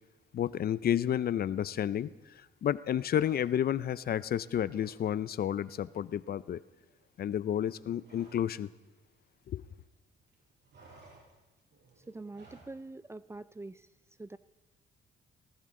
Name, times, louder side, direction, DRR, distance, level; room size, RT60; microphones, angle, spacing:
voice 1, 0.3-2.1 2.6-6.6 7.2-8.7 9.5-9.6, left 10 dB, 50° left, 0.5 m, -31 dB
sound 1, 3.1-3.9 4.2-5.0 5.3-5.5 5.8-8.6 8.8-9.9 10.2-12.8, right 3 dB, 60° right, 6.4 m, -59 dB
voice 2, 12.1-13.9 14.2-14.4, right 2 dB, 15° right, 0.4 m, -44 dB
18.5 x 17.5 x 3.8 m
cardioid pair, 90°, 20 cm